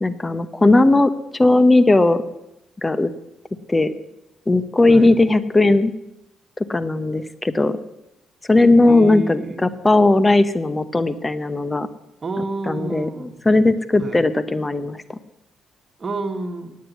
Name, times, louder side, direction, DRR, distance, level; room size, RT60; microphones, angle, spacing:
voice 1, 0.0-2.2 2.8-3.1 3.7-3.9 4.5-5.9 6.6-7.8 8.5-11.9 12.7-15.2, left 2 dB, 20° left, 13 dB, 0.7 m, -17 dB
voice 2, 8.9-9.8 12.2-13.3 14.0-14.2 16.0-16.7, right 3 dB, 35° right, 6 dB, 1.6 m, -29 dB
9.5 x 9.5 x 8.2 m, 0.92 s
cardioid pair, 90°, 0 cm